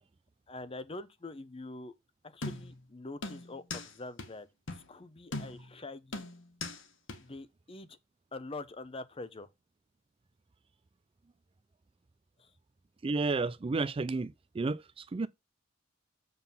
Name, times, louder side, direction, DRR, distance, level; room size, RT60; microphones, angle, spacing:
voice 1, 0.5-1.9 2.2-4.5 4.9-6.2 7.2-8.0 8.3-9.5 12.4-12.5, left 2 dB, 30° left, 0.7 m, -44 dB
sound 1, 2.4-2.9 3.2-3.9 4.2-4.3 4.7-4.9 5.3-5.8 6.1-6.8 7.1-7.2, left 2 dB, 70° left, 1.5 m, -39 dB
voice 2, 13.0-15.3, right 3 dB, 30° right, 0.4 m, -32 dB
7.5 x 4.0 x 5.4 m
head